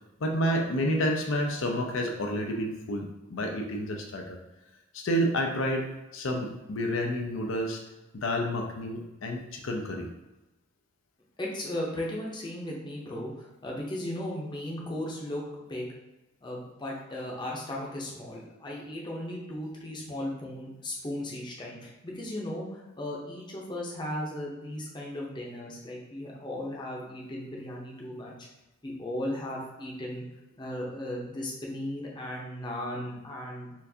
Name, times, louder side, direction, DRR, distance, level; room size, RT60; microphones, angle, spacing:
voice 1, 0.2-4.4 4.9-7.8 8.1-10.1, equal, 75° left, 2 dB, 0.5 m, -29 dB
voice 2, 11.4-15.9 16.4-28.3 28.8-30.2 30.6-33.7, left 1 dB, 25° left, -3 dB, 0.7 m, -36 dB
4.4 x 2.5 x 2.7 m, 1.0 s
head